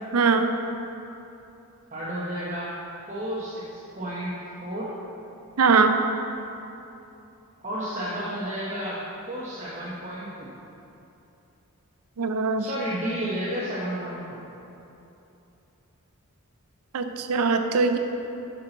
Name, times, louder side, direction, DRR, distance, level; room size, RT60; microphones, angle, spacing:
voice 1, 0.1-0.5 5.6-6.0 12.2-12.7 16.9-18.0, right 4 dB, 90° right, 7 dB, 0.5 m, -21 dB
voice 2, 1.9-2.7 3.1-4.3 4.6-4.9 7.6-9.0 9.3-10.6 12.6-14.4, equal, 35° right, -8 dB, 0.8 m, -32 dB
8.2 x 5.8 x 3.9 m, 2.9 s
head